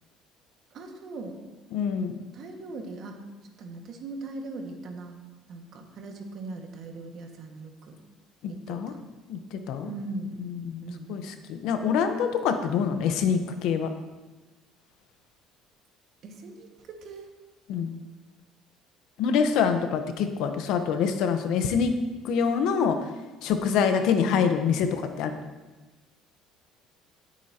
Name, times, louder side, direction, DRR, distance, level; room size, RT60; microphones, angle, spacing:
voice 1, 0.7-1.4 2.3-3.2 3.6-5.2 5.5-7.7 8.5-9.0 9.8-10.5 10.8-11.2 16.2-16.7 17.0-17.3, right 2 dB, 55° right, 2 dB, 1.8 m, -39 dB
voice 2, 1.7-2.2 8.7-8.9 9.3-9.9 10.4-13.9 17.7-18.0 19.2-22.0 22.2-23.0 23.4-25.4, left 6 dB, 75° left, 7 dB, 1.0 m, -25 dB
16.5 x 8.3 x 2.9 m, 1.2 s
cardioid pair, 115°, 0 cm